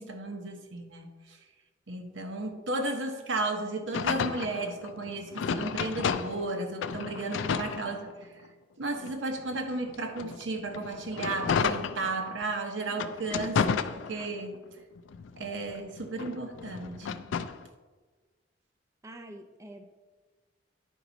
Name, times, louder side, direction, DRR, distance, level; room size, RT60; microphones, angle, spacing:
voice 1, 0.0-1.4 1.9-8.3 8.8-14.6 15.4-17.3, right 2 dB, 85° right, 4 dB, 0.9 m, -34 dB
sound 1, 3.9-6.5 6.8-8.5 9.0-12.5 12.9-14.6 15.0-17.6, left 6 dB, 90° left, 0.4 m, -32 dB
voice 2, 19.0-19.8, right 1 dB, 15° right, 4 dB, 0.4 m, -46 dB
9.7 x 4.6 x 4.0 m, 1.3 s
head